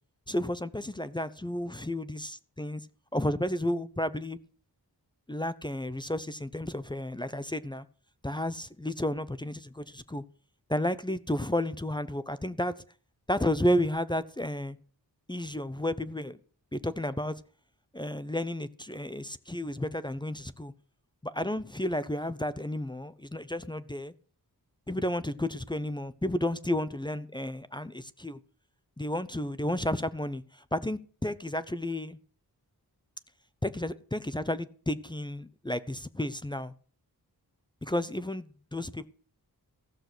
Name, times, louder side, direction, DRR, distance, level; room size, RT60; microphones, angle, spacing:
voice 1, 0.3-2.8 3.1-4.4 5.3-7.8 8.2-10.2 10.7-12.7 13.3-14.8 15.3-16.4 16.7-17.4 17.9-20.7 21.2-24.1 24.9-28.4 29.0-32.2 33.6-36.7 37.8-39.1, left 1 dB, 10° left, 0.6 m, -32 dB
15.0 x 6.6 x 6.0 m
wide cardioid pair, 100°, 38 cm